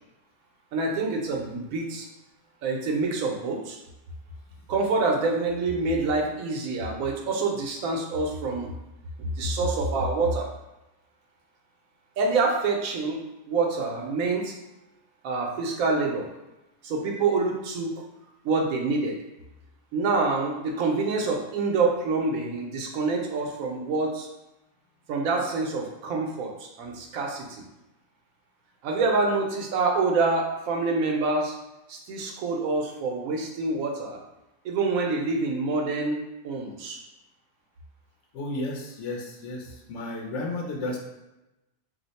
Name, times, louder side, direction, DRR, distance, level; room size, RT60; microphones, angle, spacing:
voice 1, 0.7-2.1 2.6-3.8 4.7-8.7 9.2-10.5 12.2-13.2 13.5-14.5 15.2-16.3 16.8-17.9 18.4-19.2 19.9-24.3 25.1-27.6 28.8-31.6 31.9-34.2 34.6-36.2 36.4-37.0, right 3 dB, 80° right, 1 dB, 1.0 m, -26 dB
voice 2, 38.3-41.0, left 2 dB, 70° left, -1 dB, 0.9 m, -33 dB
2.7 x 2.1 x 3.9 m, 0.95 s
omnidirectional pair, 1.5 m